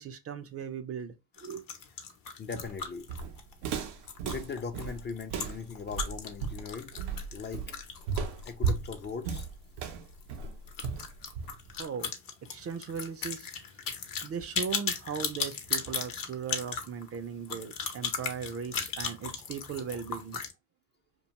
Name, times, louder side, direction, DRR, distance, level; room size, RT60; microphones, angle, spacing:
voice 1, 0.0-1.7 11.7-12.1 12.5-13.5 13.7-13.8 14.2-20.4, right 7 dB, 40° right, 0.4 m, -38 dB
sound 1, 1.3-9.5 9.8-9.9 10.2-10.3 10.7-20.5, left 6 dB, 55° left, 0.7 m, -37 dB
voice 2, 2.4-3.1 4.2-7.0 7.3-7.7 8.4-9.5, left 5 dB, 30° left, 0.4 m, -39 dB
Walk footsteps, 2.5-11.8, right 5 dB, 85° right, 0.6 m, -35 dB
2.4 x 2.3 x 2.8 m
supercardioid pair, 75°, 39 cm